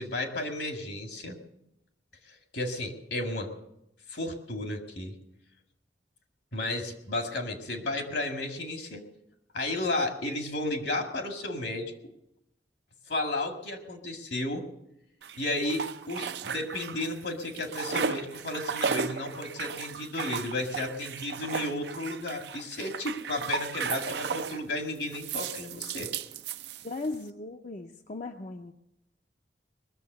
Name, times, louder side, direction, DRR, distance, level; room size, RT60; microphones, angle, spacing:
voice 1, 0.0-1.4 2.3-3.5 4.1-5.2 6.5-9.0 9.5-12.1 13.1-14.7 15.4-26.1, left 2 dB, 75° left, 4 dB, 2.1 m, -33 dB
sound 1, 15.2-17.2 17.4-24.6 25.1-27.2, right 6 dB, 70° right, 0.5 m, -35 dB
voice 2, 26.8-28.7, left 2 dB, 45° left, 5 dB, 0.6 m, -37 dB
21.0 x 7.2 x 6.7 m, 0.81 s
head